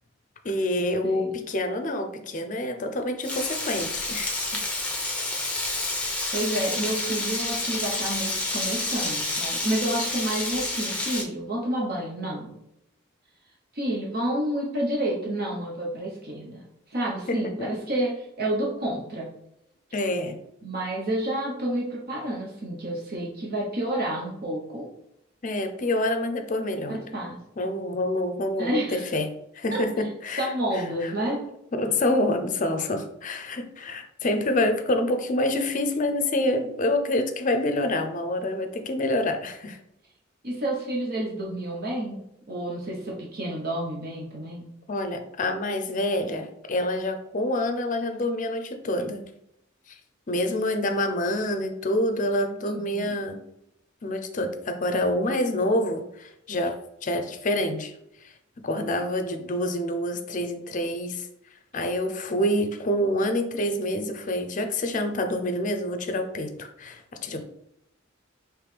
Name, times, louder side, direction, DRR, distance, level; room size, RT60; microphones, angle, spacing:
voice 1, 0.4-4.6 4.9-5.1 17.3-17.7 19.9-20.4 25.4-27.0 27.6-29.3 29.5-31.1 31.7-39.8 44.9-49.2 49.9-50.0 50.3-53.4 54.0-57.9 58.2-58.3 58.6-61.3 61.7-67.4, left 1 dB, 40° left, 7 dB, 0.5 m, -27 dB
Frying (food), 3.2-11.2, left 2 dB, 5° left, 0.7 m, -29 dB
voice 2, 6.3-12.5 13.7-16.6 16.9-19.3 20.6-24.9 26.9-27.4 28.6-29.1 29.7-29.8 30.4-31.5 40.4-42.2 42.5-44.7 52.7-53.1, right 1 dB, 50° right, -2 dB, 0.9 m, -29 dB
5.2 x 3.1 x 3.3 m, 0.80 s
head